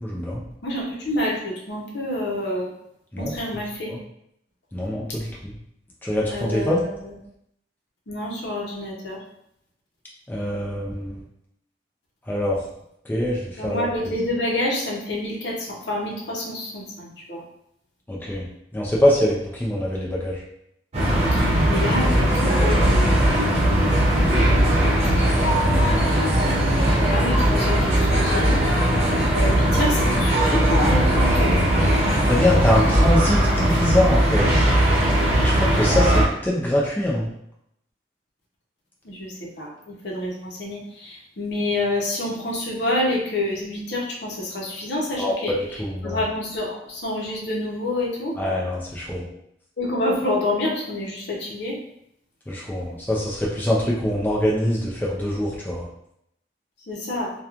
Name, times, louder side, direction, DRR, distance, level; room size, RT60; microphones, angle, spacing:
voice 1, 0.0-0.4 3.1-3.3 4.7-5.3 6.0-6.8 10.3-11.2 12.3-12.6 13.1-13.9 18.1-18.4 18.7-20.4 32.2-34.5 35.4-37.2 45.2-46.2 48.4-49.2 52.5-55.8, left 1 dB, 10° left, -5 dB, 0.4 m, -23 dB
voice 2, 0.6-2.7 3.2-3.9 6.3-7.1 8.1-9.2 13.6-17.4 21.3-23.0 24.8-25.3 27.1-28.6 29.3-31.5 39.0-48.3 49.8-51.8 56.9-57.3, left 1 dB, 70° left, -3 dB, 0.7 m, -28 dB
sound 1, 20.9-36.2, right 1 dB, 35° right, 0.7 m, -19 dB
2.9 x 2.3 x 2.4 m, 0.75 s
head